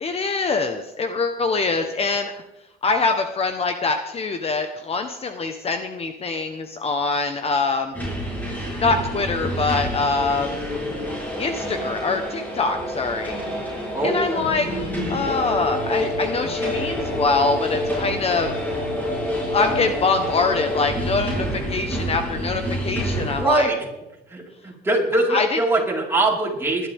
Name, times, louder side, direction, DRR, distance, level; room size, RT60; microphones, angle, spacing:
voice 1, 0.0-2.3 2.8-7.9 8.8-10.6 11.4-13.3 14.0-14.7 15.1-18.5 19.5-23.7 25.3-25.6, left 4 dB, 35° left, 7 dB, 1.3 m, -24 dB
sound 1, 7.9-23.4, equal, 10° left, 7.0 m, -27 dB
voice 2, 13.9-14.5 23.4-23.8 24.3-26.9, right 2 dB, 15° right, -3 dB, 4.7 m, -22 dB
20.5 x 12.0 x 3.7 m, 0.93 s
cardioid pair, 110°, 17 cm